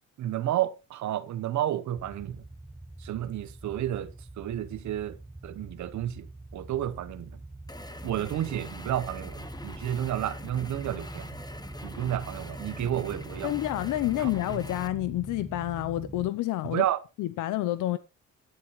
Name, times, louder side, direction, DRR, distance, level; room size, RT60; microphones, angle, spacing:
voice 1, 0.2-2.4 3.0-6.3 6.5-7.3 8.0-11.4 11.8-13.6 14.2-14.6 16.6-17.0, right 12 dB, 70° right, 1.0 m, -31 dB
sound 1, 2.0-16.3, right 2 dB, 5° right, 0.6 m, -43 dB
sound 2, 7.7-14.9, left 2 dB, 15° left, 1.3 m, -44 dB
voice 2, 13.4-16.8 17.2-18.0, left 15 dB, 85° left, 0.8 m, -29 dB
16.0 x 9.8 x 3.1 m
cardioid pair, 90°, 30 cm